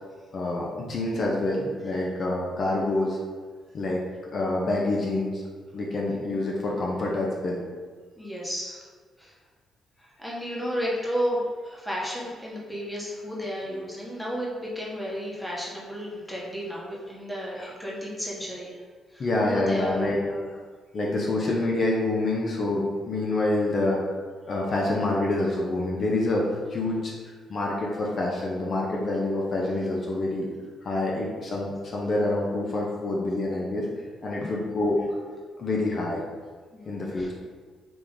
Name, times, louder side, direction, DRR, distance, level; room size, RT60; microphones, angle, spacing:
voice 1, 0.3-3.2 3.7-4.0 4.3-5.4 5.7-7.6 17.6-17.7 19.2-20.2 20.9-24.0 24.5-27.1 27.5-30.5 30.8-33.9 34.2-35.0 35.6-36.2 36.9-37.3, left 2 dB, 45° left, -3 dB, 0.7 m, -27 dB
voice 2, 8.2-8.8 9.2-9.3 10.2-18.8 19.1-20.5 31.1-31.2 36.7-37.3, equal, 5° left, -5 dB, 1.1 m, -32 dB
5.0 x 2.4 x 3.6 m, 1.5 s
cardioid pair, 90°, 0 cm